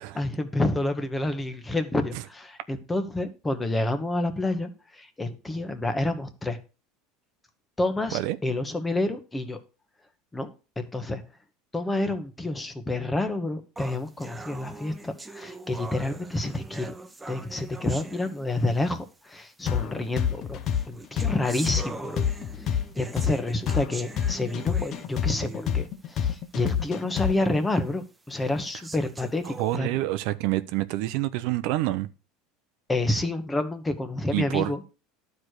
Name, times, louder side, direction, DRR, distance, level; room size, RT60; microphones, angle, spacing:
voice 1, 0.2-6.6 7.8-9.6 10.3-10.5 10.8-11.2 11.7-16.9 17.3-20.6 20.9-22.2 22.6-29.9 32.9-34.8, left 2 dB, 10° left, 1.2 m, -29 dB
sound 1, 13.8-18.9 19.8-19.9 20.6-25.9 26.3-26.4 27.0-27.1 27.7-27.8 28.6-29.8, right 3 dB, 10° right, 0.7 m, -42 dB
sound 2, 19.7-27.6, left 8 dB, 40° left, 0.9 m, -27 dB
voice 2, 29.4-32.1 34.3-34.9, right 16 dB, 65° right, 0.7 m, -27 dB
12.0 x 4.7 x 6.5 m
supercardioid pair, 150°, 0 cm